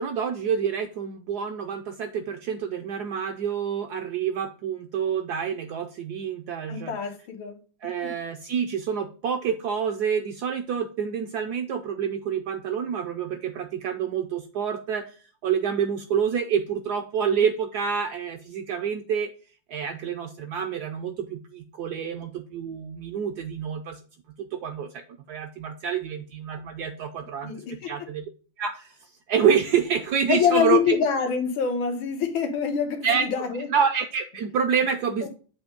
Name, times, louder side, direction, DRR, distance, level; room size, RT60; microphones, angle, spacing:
voice 1, 0.0-7.0 7.8-15.2 15.4-19.3 19.7-24.0 24.5-27.5 27.9-28.2 28.6-28.9 29.3-31.0 33.0-35.3, right 7 dB, 70° right, 5 dB, 0.9 m, -27 dB
voice 2, 6.7-7.6 8.0-8.1 27.4-27.9 30.3-33.7 35.2-35.3, left 7 dB, 90° left, 5 dB, 1.8 m, -25 dB
7.8 x 2.7 x 5.1 m, 0.39 s
omnidirectional pair, 2.1 m